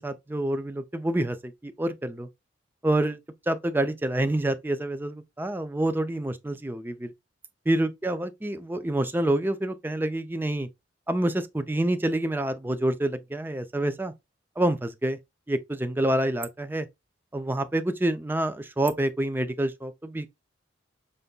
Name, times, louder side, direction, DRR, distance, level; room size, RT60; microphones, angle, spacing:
voice 1, 0.0-2.3 2.8-3.2 3.5-7.1 7.7-10.7 11.1-14.1 14.6-15.2 15.5-16.9 17.3-20.3, right 1 dB, 10° right, 0.4 m, -27 dB
5.3 x 3.4 x 2.3 m
head